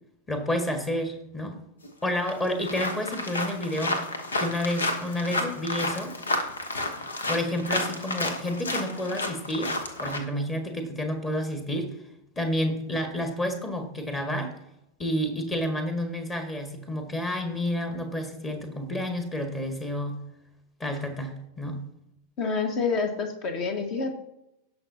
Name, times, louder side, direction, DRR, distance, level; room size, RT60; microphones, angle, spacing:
voice 1, 0.3-1.6 2.0-4.0 4.4-6.1 7.3-9.7 10.0-11.9 12.4-14.5 15.0-20.2 20.8-21.8, left 1 dB, 20° left, 5 dB, 1.8 m, -30 dB
sound 1, 1.8-1.9 2.3-10.2, left 2 dB, 70° left, 1.3 m, -31 dB
voice 2, 22.4-24.1, left 4 dB, 35° left, 6 dB, 1.6 m, -27 dB
18.0 x 6.0 x 2.8 m, 0.84 s
figure-of-eight pair, 90°, 0 cm